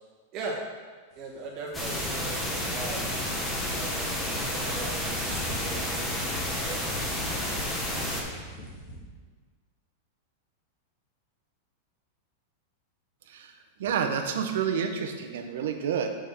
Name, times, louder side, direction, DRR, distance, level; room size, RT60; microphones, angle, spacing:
sound 1, 1.1-9.0, left 1 dB, 40° left, 1.7 m, -45 dB
voice 1, 1.1-3.0 3.7-6.9, right 3 dB, 35° right, -2 dB, 1.6 m, -39 dB
sound 2, 1.7-8.2, left 1 dB, 10° left, 1.2 m, -31 dB
voice 2, 13.8-16.1, right 7 dB, 75° right, 5 dB, 0.8 m, -29 dB
6.4 x 5.3 x 4.4 m, 1.5 s
supercardioid pair, 145°, 0 cm